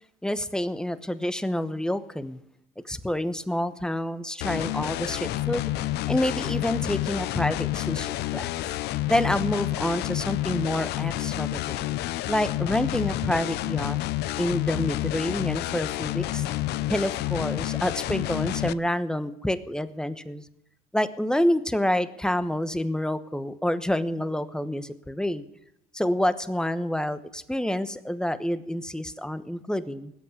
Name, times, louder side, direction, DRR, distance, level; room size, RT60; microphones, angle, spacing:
voice 1, 0.2-2.4 2.8-5.7 6.1-8.5 9.1-11.8 12.3-14.0 14.4-16.5 16.9-20.4 20.9-25.5 25.9-30.1, left 1 dB, 5° left, 12 dB, 1.0 m, -28 dB
sound 1, 4.4-18.7, left 16 dB, 80° left, 0.5 m, -29 dB
19.5 x 8.4 x 8.3 m, 0.79 s
cardioid pair, 110°, 17 cm